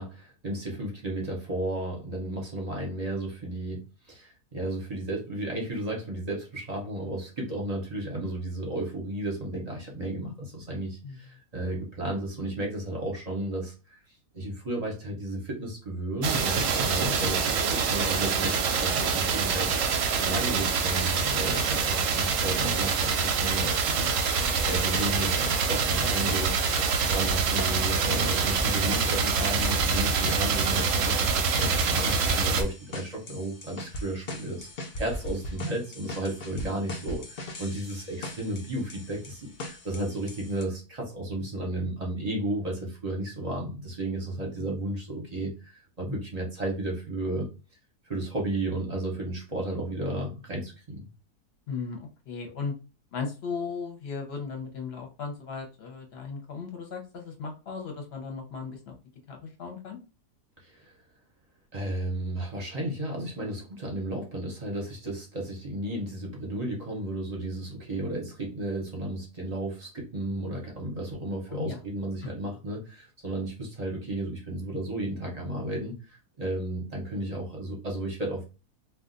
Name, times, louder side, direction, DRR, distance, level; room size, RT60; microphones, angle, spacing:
voice 1, 0.0-13.7 14.3-19.7 20.1-26.6 27.0-34.7 35.0-47.5 48.1-51.0 60.7-60.8 61.7-78.4, right 1 dB, 35° right, -1 dB, 0.6 m, -33 dB
sound 1, 16.2-32.6, right 5 dB, 65° right, 0.8 m, -26 dB
sound 2, 24.4-40.6, left 1 dB, 85° left, 0.4 m, -39 dB
voice 2, 51.7-52.0 52.3-52.7 53.1-58.9 59.3-60.0 71.5-71.8, left 5 dB, 50° left, 3 dB, 0.8 m, -36 dB
2.4 x 2.4 x 3.8 m, 0.32 s
omnidirectional pair, 1.7 m